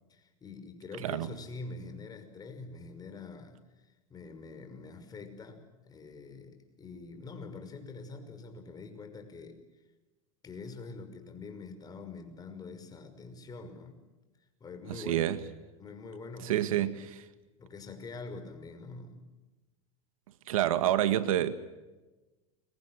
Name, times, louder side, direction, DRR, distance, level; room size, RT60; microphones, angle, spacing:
voice 1, 0.1-9.6 10.4-14.0 14.6-15.3 15.8-16.9 17.6-19.2, left 3 dB, 20° left, 5.9 m, -45 dB
voice 2, 14.9-15.4 16.4-17.3 20.5-21.5, right 12 dB, 80° right, 1.9 m, -28 dB
29.5 x 24.0 x 6.5 m
supercardioid pair, 125°, 18 cm